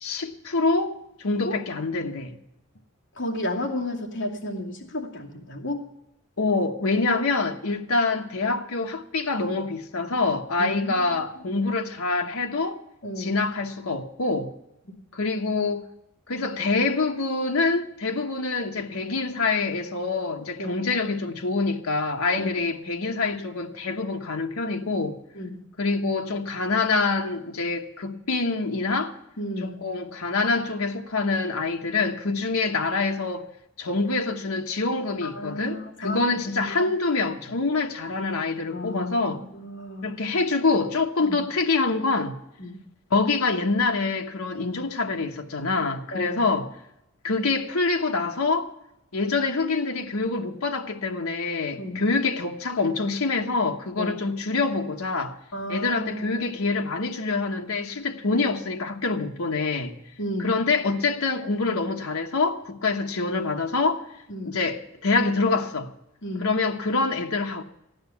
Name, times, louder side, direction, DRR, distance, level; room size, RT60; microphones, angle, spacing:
voice 1, 0.0-2.3 6.4-12.8 13.2-14.5 15.1-15.9 16.3-25.2 25.8-29.2 29.6-33.4 33.8-39.4 40.0-42.4 43.1-46.7 47.2-48.7 49.1-55.4 55.7-59.9 60.4-64.1 64.4-65.9 66.4-67.6, left 3 dB, 80° left, 1.2 m, -26 dB
voice 2, 3.2-5.8 10.6-11.1 11.5-11.6 13.0-13.4 20.6-20.8 22.3-22.9 25.3-25.6 29.4-29.8 35.2-36.9 38.7-40.1 41.2-41.4 42.6-42.8 46.1-46.4 51.8-52.0 54.0-54.2 55.5-56.4 60.2-60.5 64.3-64.6 66.2-66.5, left 1 dB, 55° left, 2.5 m, -33 dB
15.0 x 10.5 x 7.0 m
head